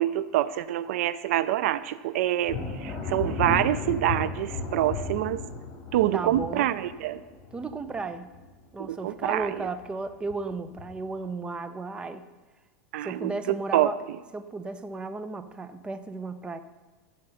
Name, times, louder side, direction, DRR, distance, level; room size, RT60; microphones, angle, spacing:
voice 1, 0.0-5.4 5.9-7.2 8.8-9.6 12.9-13.9, right 13 dB, 75° right, 16 dB, 0.4 m, -26 dB
Thunder, 2.4-8.9 9.3-9.8 10.3-11.1, left 4 dB, 40° left, 3.0 m, -35 dB
voice 2, 6.1-6.7 7.5-8.3 8.7-12.2 13.0-14.0 14.3-16.6, right 3 dB, 15° right, 10 dB, 0.5 m, -34 dB
14.5 x 5.2 x 5.7 m, 1.3 s
supercardioid pair, 140°, 8 cm